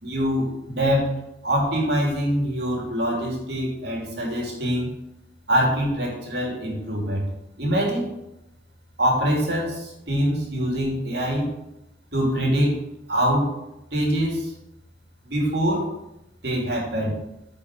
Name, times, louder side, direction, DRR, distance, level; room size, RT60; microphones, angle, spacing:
voice 1, 0.0-1.2 1.4-4.9 5.5-7.3 7.6-8.1 9.0-11.5 12.1-13.5 13.9-14.5 15.2-15.9 16.4-17.2, equal, 65° right, -1 dB, 2.9 m, -24 dB
9.7 x 5.4 x 6.0 m, 0.89 s
head